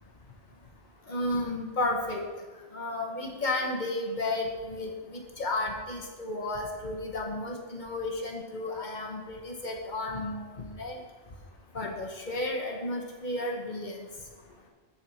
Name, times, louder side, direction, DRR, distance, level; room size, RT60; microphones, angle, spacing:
voice 1, 1.1-2.2 2.7-11.0 11.7-14.1, left 2 dB, 50° left, 0 dB, 1.4 m, -33 dB
7.4 x 4.8 x 7.0 m, 1.3 s
omnidirectional pair, 1.0 m